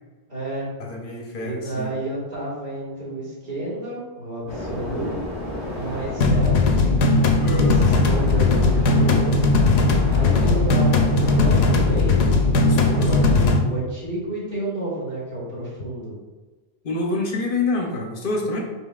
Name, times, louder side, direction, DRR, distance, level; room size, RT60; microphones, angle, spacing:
voice 1, 0.3-0.7 1.4-5.1 5.7-7.0 7.5-9.3 10.1-12.2 12.5-12.7 13.0-16.1, right 2 dB, 50° right, -7 dB, 1.8 m, -31 dB
voice 2, 0.8-1.9 7.4-7.8 12.6-13.2 16.8-18.6, left 2 dB, 60° left, 0 dB, 0.8 m, -27 dB
sound 1, 4.5-13.5, left 1 dB, 25° right, 1.2 m, -31 dB
sound 2, 6.2-13.6, left 3 dB, 90° left, 0.9 m, -18 dB
5.4 x 4.1 x 2.4 m, 1.2 s
omnidirectional pair, 1.0 m